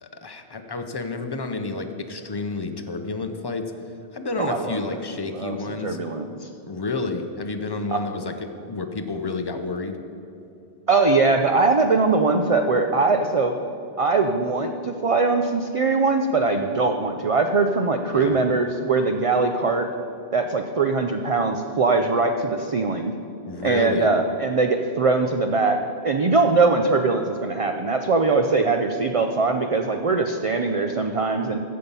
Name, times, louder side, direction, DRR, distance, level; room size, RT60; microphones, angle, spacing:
voice 1, 0.0-3.7 4.1-6.0 6.7-10.0 18.1-18.4 23.5-24.1, left 3 dB, 30° left, 7 dB, 0.5 m, -30 dB
voice 2, 4.4-4.8 5.3-6.5 7.9-8.0 10.9-13.5 14.0-19.9 20.3-23.1 23.6-25.8 26.0-31.6, right 3 dB, 50° right, 5 dB, 0.4 m, -21 dB
15.0 x 5.7 x 5.4 m, 2.7 s
omnidirectional pair, 1.1 m